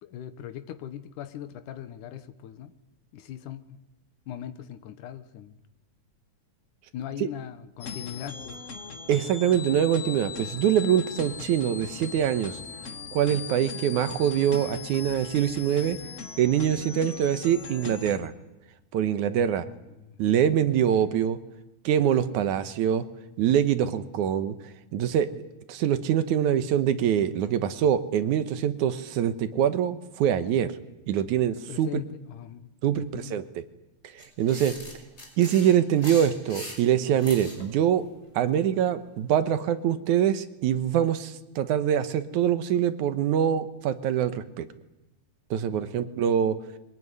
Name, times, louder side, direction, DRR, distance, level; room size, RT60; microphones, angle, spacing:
voice 1, 0.0-2.7 3.1-3.8 4.3-5.6 6.9-8.7 19.6-20.2 20.9-21.3 22.5-22.7 31.7-33.4 45.7-46.3, left 10 dB, 80° left, 11 dB, 2.7 m, -40 dB
sound 1, 7.8-18.2, left 6 dB, 45° left, 0.9 m, -39 dB
voice 2, 9.1-12.6 13.1-16.0 16.4-18.3 18.9-19.7 20.2-21.4 21.8-23.0 23.4-25.3 25.7-30.7 31.1-31.9 32.8-33.6 34.1-34.7 35.4-38.1 38.4-44.7 45.5-46.6, right 9 dB, 75° right, 12 dB, 2.4 m, -24 dB
sound 2, 34.2-37.6, left 1 dB, 20° left, 5.7 m, -40 dB
23.0 x 18.5 x 9.6 m, 1.0 s
omnidirectional pair, 3.6 m